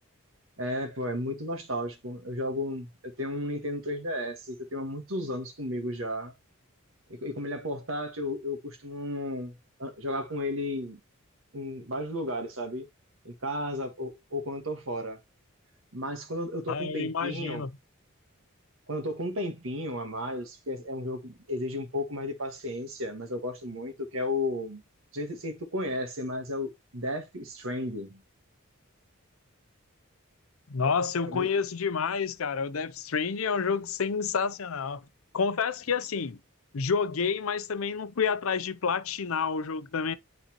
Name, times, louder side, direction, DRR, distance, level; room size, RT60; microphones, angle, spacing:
voice 1, 0.6-2.9 3.2-6.3 7.1-9.5 9.8-11.0 11.5-12.9 13.2-15.2 15.9-17.6 18.9-24.8 25.1-28.2 31.3-31.5, left 1 dB, 65° right, 1.6 m, -33 dB
voice 2, 16.7-17.7 30.7-35.0 35.3-36.4 36.7-40.1, left 5 dB, 75° left, 0.6 m, -29 dB
9.1 x 4.2 x 3.0 m
head